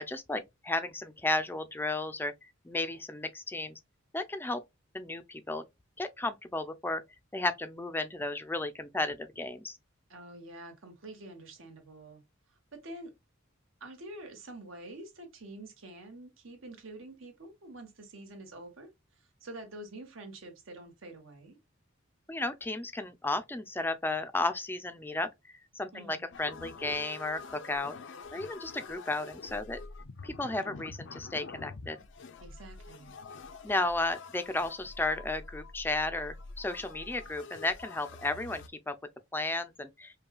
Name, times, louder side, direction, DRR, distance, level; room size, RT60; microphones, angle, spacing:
voice 1, 0.0-3.8 4.1-4.6 4.9-5.6 6.0-7.0 7.3-9.8 22.3-25.3 25.7-28.0 28.3-29.8 30.2-32.0 33.6-38.9 39.3-40.1, left 2 dB, 10° left, 0.5 m, -33 dB
voice 2, 10.1-13.1 13.8-21.6 25.9-26.3 32.4-33.2, right 1 dB, 75° right, 1.4 m, -47 dB
sound 1, 26.3-38.7, left 4 dB, 60° left, 0.5 m, -47 dB
5.4 x 2.3 x 2.3 m
head